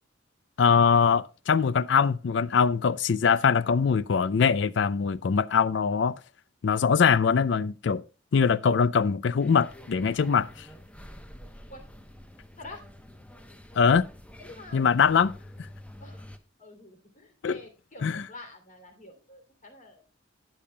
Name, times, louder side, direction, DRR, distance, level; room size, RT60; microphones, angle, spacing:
voice 1, 0.6-6.2 6.6-8.0 8.3-10.7 13.8-14.1 14.7-15.3 17.4-17.6 18.0-18.2, left 6 dB, 65° left, 0.4 m, -22 dB
sound 1, 9.4-16.4, equal, 5° left, 0.8 m, -48 dB
voice 2, 14.4-14.9 16.0-16.2 16.6-20.0, left 2 dB, 40° left, 3.0 m, -47 dB
18.5 x 7.0 x 2.2 m
head